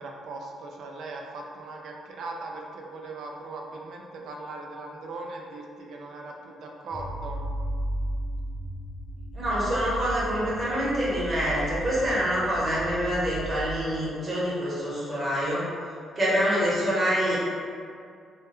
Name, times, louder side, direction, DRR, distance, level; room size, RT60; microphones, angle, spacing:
voice 1, 0.0-7.4, right 2 dB, 70° right, 0 dB, 0.3 m, -39 dB
sound 1, 6.9-13.8, right 1 dB, 55° left, 0.5 m, -35 dB
voice 2, 9.3-15.7 16.2-17.4, equal, 35° right, -7 dB, 0.8 m, -26 dB
2.1 x 2.0 x 3.0 m, 2.3 s
cardioid pair, 90°, 0 cm